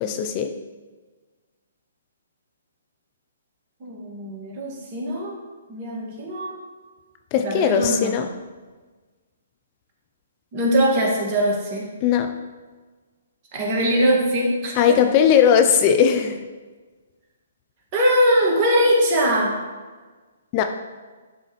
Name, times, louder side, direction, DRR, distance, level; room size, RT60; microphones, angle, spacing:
voice 1, 0.0-0.5 7.3-8.3 12.0-12.3 14.8-16.4 20.5-20.6, left 8 dB, 35° left, 6 dB, 0.5 m, -18 dB
voice 2, 3.8-5.4 5.7-6.6 7.3-8.1 10.5-11.9 13.5-15.0 17.9-19.5, equal, 35° right, -2 dB, 1.9 m, -21 dB
11.0 x 3.8 x 3.1 m, 1.4 s
figure-of-eight pair, 130°, 0 cm